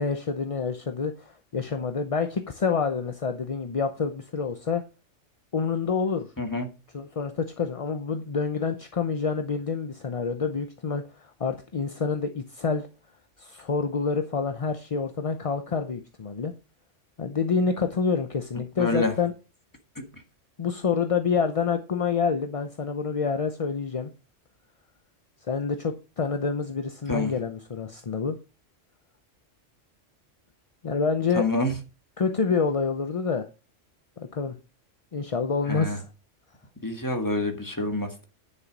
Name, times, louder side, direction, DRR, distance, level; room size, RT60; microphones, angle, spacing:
voice 1, 0.0-4.8 5.5-6.3 6.9-12.9 13.4-16.5 17.2-19.3 20.6-24.1 25.5-28.4 30.8-31.5 32.2-33.5 34.2-34.6 35.1-36.0, left 5 dB, 35° left, 7 dB, 0.6 m, -27 dB
voice 2, 18.8-19.1 27.1-27.3 31.4-31.7 35.7-36.0 36.8-38.2, left 2 dB, 15° left, 4 dB, 1.7 m, -27 dB
10.0 x 6.6 x 5.2 m, 0.32 s
omnidirectional pair, 1.3 m